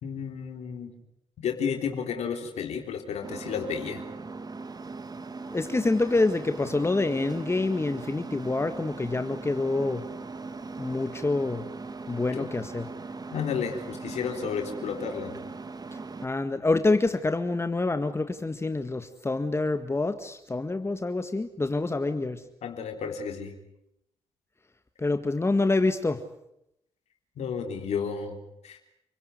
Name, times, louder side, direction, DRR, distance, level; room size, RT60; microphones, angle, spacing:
voice 1, 0.0-0.9 1.4-4.0 12.3-12.5 13.3-15.4 22.6-23.5 27.4-28.4 28.6-28.8, left 6 dB, 75° left, 4 dB, 3.7 m, -32 dB
sound 1, 3.2-16.3, right 3 dB, 35° right, 1.9 m, -40 dB
voice 2, 5.5-10.0 10.8-11.7 12.1-12.9 16.2-22.4 25.0-26.2, left 3 dB, 25° left, 9 dB, 1.8 m, -26 dB
29.5 x 16.5 x 9.8 m, 0.81 s
supercardioid pair, 60°, 11 cm